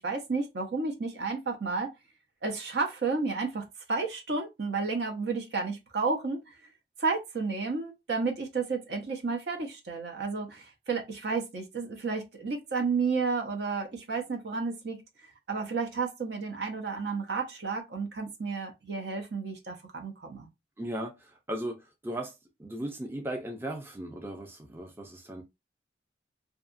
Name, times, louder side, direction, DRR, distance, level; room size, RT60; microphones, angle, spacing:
voice 1, 0.0-1.9 2.4-6.4 7.0-15.0 15.5-20.5, right 4 dB, 65° right, 0.7 m, -32 dB
voice 2, 20.8-22.3 22.6-25.4, right 1 dB, 15° right, 0.4 m, -37 dB
2.7 x 2.4 x 2.4 m
head